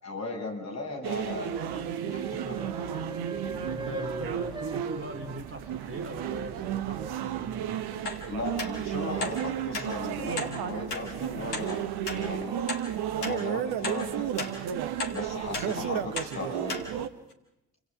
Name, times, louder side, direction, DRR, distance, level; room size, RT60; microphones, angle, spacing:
voice 1, 0.0-2.6 8.3-12.7 13.2-14.5 15.1-16.8, left 2 dB, 35° left, 1 dB, 7.0 m, -37 dB
sound 1, 1.0-17.1, right 10 dB, 55° right, 1.4 m, -33 dB
sound 2, 1.4-5.2 6.5-7.1, right 2 dB, 10° right, 1.3 m, -40 dB
voice 2, 3.7-7.0 7.3-8.0, right 1 dB, 30° right, 3 dB, 4.4 m, -40 dB
sound 3, 8.1-8.2 8.6-8.7 9.2-9.4 9.7-9.9 10.4-10.5 10.9-11.0 11.5-11.7 12.1-12.2 12.7-12.8 13.2-13.4 13.8-14.0 14.4-14.5 15.0-15.2 15.5-15.7 16.2-16.3 16.7-16.8 17.3-17.4, left 3 dB, 85° left, 2.4 m, -34 dB
29.0 x 26.0 x 3.7 m, 0.86 s
figure-of-eight pair, 45°, 45 cm